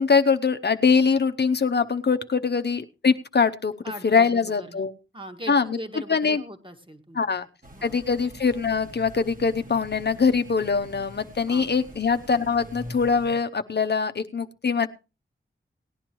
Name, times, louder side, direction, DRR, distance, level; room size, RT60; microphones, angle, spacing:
voice 1, 0.0-3.7 4.0-4.9 5.5-5.8 6.1-6.4 7.1-7.5 7.8-14.9, left 5 dB, 55° left, 9 dB, 0.8 m, -23 dB
voice 2, 3.8-4.8 5.1-7.5 7.7-8.0 11.5-11.7, equal, 25° right, 5 dB, 1.9 m, -40 dB
sound 1, 7.6-13.4, equal, 40° right, 2.1 m, -44 dB
18.5 x 10.0 x 3.1 m, 0.30 s
cardioid pair, 45°, 21 cm